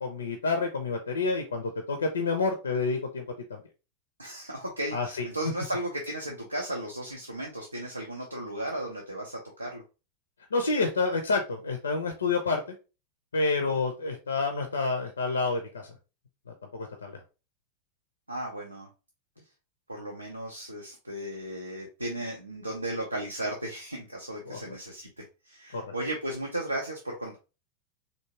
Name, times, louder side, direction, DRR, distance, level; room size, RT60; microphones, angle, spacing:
voice 1, 0.0-3.2 3.5-3.6 4.9-5.3 10.5-12.6 13.3-15.9 16.7-17.2 24.5-24.6 25.7-25.8, left 3 dB, 70° left, 5 dB, 0.5 m, -28 dB
voice 2, 4.2-9.8 13.7-13.8 18.3-18.9 19.9-27.4, right 1 dB, 85° right, 0 dB, 0.5 m, -35 dB
3.5 x 2.6 x 2.8 m, 0.31 s
figure-of-eight pair, 90°, 0 cm